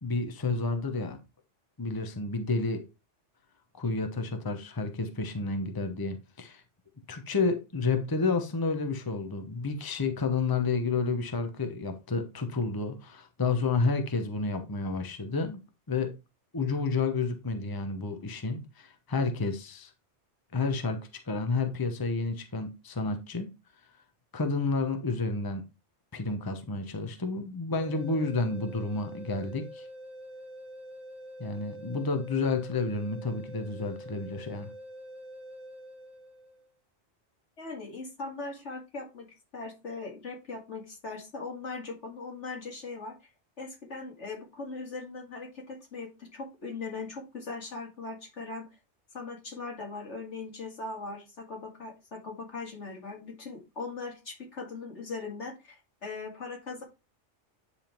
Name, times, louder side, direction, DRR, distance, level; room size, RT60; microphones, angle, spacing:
voice 1, 0.0-1.2 1.8-2.8 3.8-6.6 7.1-15.6 15.9-16.1 16.5-19.9 20.5-23.5 24.3-25.6 26.1-29.9 31.4-34.7, left 3 dB, 20° left, 6 dB, 0.9 m, -30 dB
sound 1, 27.8-36.7, equal, 40° right, 1.5 m, -46 dB
voice 2, 37.6-39.3 39.5-43.3 43.6-48.7 49.1-56.8, left 3 dB, 75° left, 0 dB, 2.6 m, -40 dB
9.8 x 3.6 x 4.4 m, 0.27 s
omnidirectional pair, 1.2 m